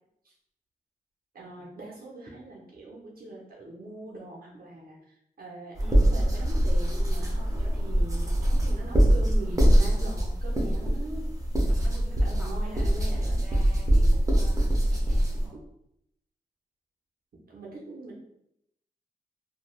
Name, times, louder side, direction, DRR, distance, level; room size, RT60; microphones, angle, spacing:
voice 1, 1.3-11.3 12.2-13.4 17.5-18.2, right 2 dB, 70° right, -3 dB, 0.7 m, -42 dB
voice 2, 5.8-6.3 11.7-14.0 14.3-15.6, equal, 5° right, -5 dB, 1.4 m, -48 dB
sound 1, 5.8-15.5, equal, 20° right, 0.7 m, -23 dB
3.1 x 2.2 x 2.2 m, 0.76 s
wide cardioid pair, 70°, 16 cm